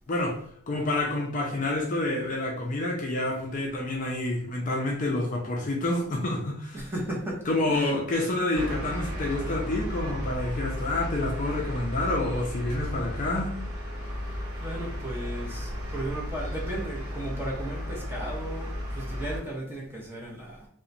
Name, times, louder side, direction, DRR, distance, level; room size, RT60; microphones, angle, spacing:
voice 1, 0.1-0.4 0.7-6.8 7.5-13.6, left 2 dB, 35° left, 0.4 m, -28 dB
voice 2, 6.7-8.0 14.6-20.7, right 1 dB, 10° right, 0.7 m, -35 dB
sound 1, 8.5-19.4, left 1 dB, 65° right, 0.9 m, -34 dB
2.9 x 2.1 x 2.5 m
head